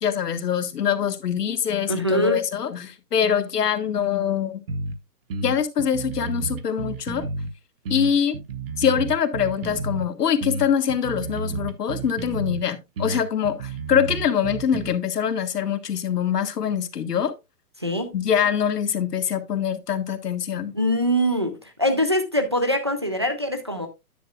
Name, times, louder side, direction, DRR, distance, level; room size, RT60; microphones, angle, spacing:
voice 1, 0.0-4.6 5.4-7.2 7.9-8.4 8.8-17.3 18.1-20.7, left 8 dB, 90° left, 1.6 m, -24 dB
voice 2, 1.9-2.4 13.1-13.2 17.8-18.1 20.7-23.9, equal, 20° right, 0.4 m, -23 dB
sound 1, 4.7-5.0 5.3-7.5 7.9-10.1 10.4-12.6 13.0-14.9, right 3 dB, 40° right, 1.0 m, -31 dB
10.0 x 7.9 x 2.3 m
hypercardioid pair, 165°, 46 cm